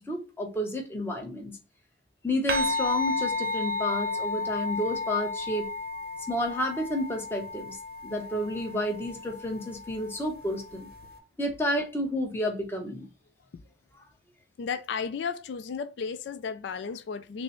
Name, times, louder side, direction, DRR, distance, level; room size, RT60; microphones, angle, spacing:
voice 1, 0.1-1.6 2.2-5.7 6.3-7.8 8.0-10.9 11.4-13.1, left 1 dB, 15° left, 0.8 m, -30 dB
sound 1, 2.5-11.2, left 2 dB, 55° right, 0.6 m, -33 dB
voice 2, 14.6-17.4, left 6 dB, 80° left, 0.3 m, -34 dB
5.9 x 2.0 x 3.0 m
head